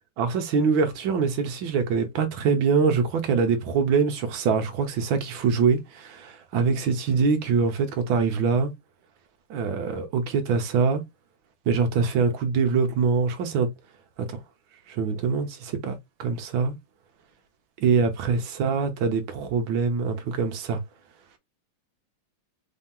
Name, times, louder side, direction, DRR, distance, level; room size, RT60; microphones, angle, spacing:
voice 1, 0.2-8.7 9.5-11.0 11.7-13.7 14.2-14.4 14.9-16.7 17.8-20.8, right 5 dB, 70° right, 1.7 m, -24 dB
4.7 x 2.8 x 3.6 m
omnidirectional pair, 2.2 m